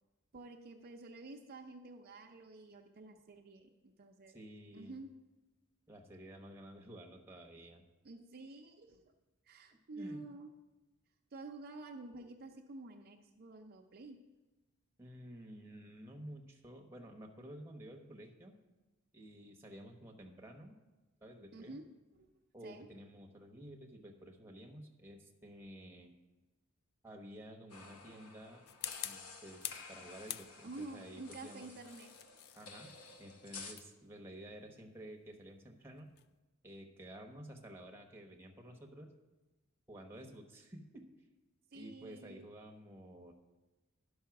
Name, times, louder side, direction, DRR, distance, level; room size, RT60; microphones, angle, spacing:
voice 1, 0.3-4.4 4.7-5.1 8.0-9.1 9.4-10.5 11.3-14.2 21.5-21.8 22.2-22.3 22.6-22.9 30.6-32.1 41.7-42.5, right 2 dB, 45° right, 2 dB, 0.6 m, -50 dB
voice 2, 4.3-5.0 5.9-7.8 9.9-10.2 15.0-18.6 19.1-20.8 21.2-21.8 22.5-26.1 27.0-28.6 29.0-31.7 32.5-32.9 33.2-36.1 36.6-39.1 39.9-41.1 41.7-43.3, equal, 10° right, 2 dB, 1.0 m, -52 dB
sound 1, 27.7-33.7, left 4 dB, 85° left, 1.0 m, -52 dB
sound 2, 28.7-29.9 30.3-30.9 31.6-36.4, left 11 dB, 50° left, 0.3 m, -47 dB
11.5 x 5.5 x 5.8 m, 1.1 s
head